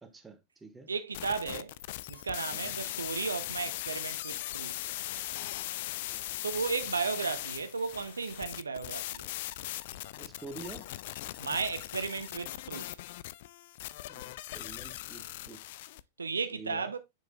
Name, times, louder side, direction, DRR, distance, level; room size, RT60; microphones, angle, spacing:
voice 1, 0.0-0.9 2.5-2.7 6.1-6.2 10.2-10.9 14.1-15.6 16.5-16.9, right 3 dB, 15° right, 1.2 m, -47 dB
voice 2, 0.9-1.7 2.1-4.8 6.4-9.3 11.4-12.9 16.2-17.0, right 5 dB, 75° right, 0.5 m, -34 dB
sound 1, 1.1-16.0, left 16 dB, 50° left, 0.3 m, -39 dB
6.8 x 6.3 x 2.3 m
figure-of-eight pair, 90°, 0 cm